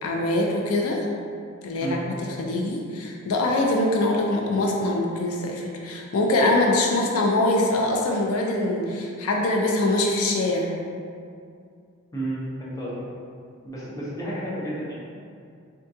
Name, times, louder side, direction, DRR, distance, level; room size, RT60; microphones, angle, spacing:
voice 1, 0.0-1.1 1.6-10.7, left 2 dB, 90° left, 0 dB, 0.4 m, -23 dB
voice 2, 12.1-12.9 13.6-14.9, right 1 dB, 15° left, -8 dB, 0.6 m, -31 dB
3.6 x 2.3 x 2.7 m, 2.3 s
head